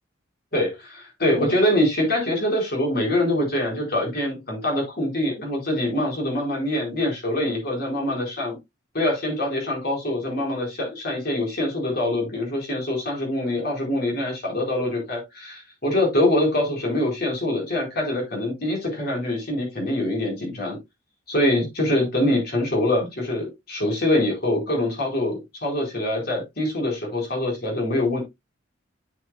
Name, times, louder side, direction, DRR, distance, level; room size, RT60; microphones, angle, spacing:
voice 1, 0.5-8.6 8.9-20.8 21.3-28.2, left 1 dB, 50° left, 4.4 m, -24 dB
8.5 x 8.3 x 2.3 m
head